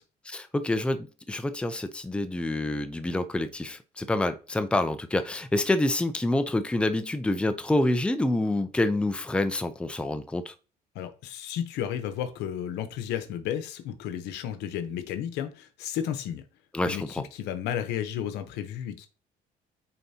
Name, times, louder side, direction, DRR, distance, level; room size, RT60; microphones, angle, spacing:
voice 1, 0.3-10.5 16.7-17.2, left 1 dB, 5° left, 0.5 m, -27 dB
voice 2, 10.9-16.4 16.8-19.1, left 10 dB, 85° left, 0.9 m, -33 dB
9.0 x 4.1 x 2.8 m
cardioid pair, 110°, 17 cm